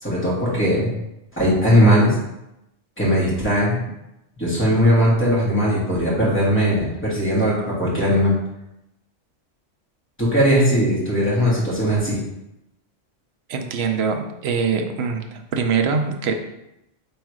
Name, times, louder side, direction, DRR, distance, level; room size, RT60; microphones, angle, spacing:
voice 1, 0.0-0.9 1.4-2.2 3.0-3.8 4.4-8.4 10.2-12.2, equal, 10° left, -7 dB, 1.5 m, -19 dB
voice 2, 13.5-16.3, right 5 dB, 65° right, 4 dB, 0.8 m, -23 dB
3.6 x 3.2 x 4.6 m, 0.87 s
omnidirectional pair, 1.3 m